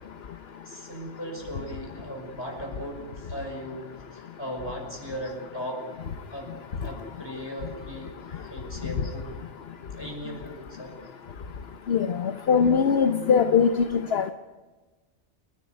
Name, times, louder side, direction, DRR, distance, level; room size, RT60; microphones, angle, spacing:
voice 1, 0.6-5.8 6.3-6.5 6.8-9.3 9.9-11.0, equal, 20° left, 2 dB, 5.6 m, -38 dB
voice 2, 11.9-13.7 14.1-14.3, left 6 dB, 60° left, 8 dB, 1.1 m, -21 dB
30.0 x 10.5 x 9.3 m, 1.3 s
omnidirectional pair, 1.2 m